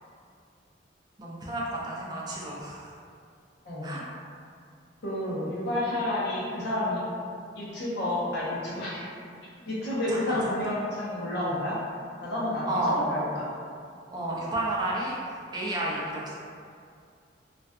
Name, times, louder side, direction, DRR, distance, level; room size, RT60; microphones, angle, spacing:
voice 1, 1.2-2.9 3.8-4.0 10.1-10.4 12.7-13.1 14.1-16.3, right 1 dB, 25° right, -4 dB, 0.4 m, -31 dB
voice 2, 5.0-7.0 7.5-9.1 9.7-11.8 12.2-13.5, left 1 dB, 65° left, -8 dB, 0.7 m, -30 dB
2.4 x 2.4 x 2.2 m, 2.3 s
head